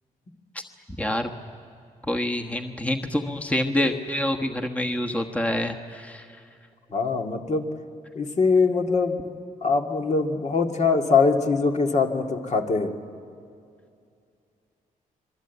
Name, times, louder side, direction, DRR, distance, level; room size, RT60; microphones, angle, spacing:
voice 1, 1.0-1.3 2.1-6.4, left 1 dB, 10° left, 4 dB, 1.3 m, -27 dB
voice 2, 6.9-7.7 8.2-9.3 9.6-12.9, left 4 dB, 50° left, 3 dB, 2.0 m, -22 dB
26.0 x 22.0 x 8.2 m, 2.4 s
cardioid pair, 75°, 15 cm